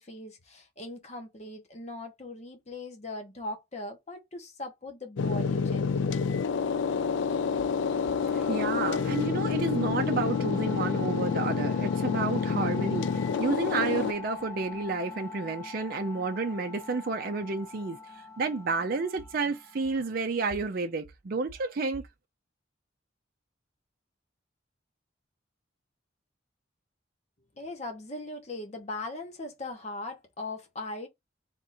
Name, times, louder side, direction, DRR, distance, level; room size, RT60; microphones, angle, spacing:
voice 1, 0.0-6.2 27.6-31.1, left 2 dB, 35° left, 1.0 m, -40 dB
sound 1, 5.2-14.1, left 5 dB, 75° left, 0.3 m, -28 dB
sound 2, 6.8-20.3, left 4 dB, 15° left, 1.2 m, -43 dB
voice 2, 8.3-18.0 18.4-22.1, right 4 dB, 50° right, 0.5 m, -31 dB
3.5 x 2.5 x 4.2 m
head